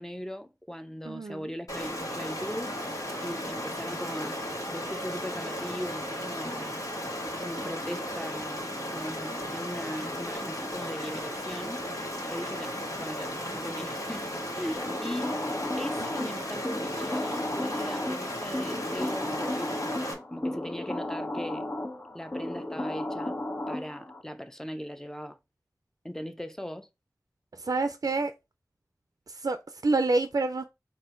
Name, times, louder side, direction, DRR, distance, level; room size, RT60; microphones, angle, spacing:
voice 1, 0.0-2.7 3.2-4.4 4.7-6.8 7.4-11.8 12.3-14.3 14.5-15.4 15.8-21.7 22.1-23.4 23.7-25.4 26.0-26.9, equal, 5° left, 0.6 m, -39 dB
voice 2, 1.1-1.5 16.2-16.4 27.6-28.3 29.3-30.6, right 3 dB, 65° right, 0.4 m, -28 dB
Stream, 1.7-20.1, equal, 60° left, 1.6 m, -35 dB
sound 1, 14.8-24.2, left 1 dB, 40° left, 0.9 m, -34 dB
4.2 x 2.6 x 4.4 m
wide cardioid pair, 40°, 6 cm